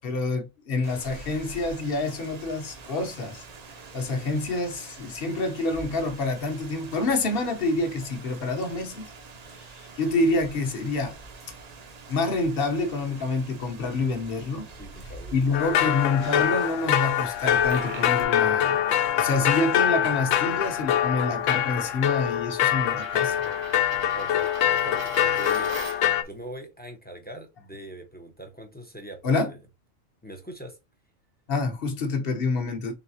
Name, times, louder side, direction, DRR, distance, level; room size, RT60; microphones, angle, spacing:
voice 1, 0.0-3.5 3.9-9.1 9.5-11.2 12.1-14.7 15.0-18.8 19.1-23.4 29.2-29.5 31.5-32.9, left 3 dB, 50° left, 1.2 m, -27 dB
Rain, 0.8-18.2, right 3 dB, 40° right, 0.6 m, -45 dB
voice 2, 14.8-15.9 24.1-25.8 26.2-29.6 30.2-30.8, right 1 dB, 10° left, 0.6 m, -42 dB
sound 1, 15.5-26.2, left 10 dB, 80° left, 0.9 m, -24 dB
Coin (dropping), 17.3-26.2, right 4 dB, 65° right, 1.1 m, -43 dB
4.0 x 3.6 x 2.8 m
omnidirectional pair, 1.3 m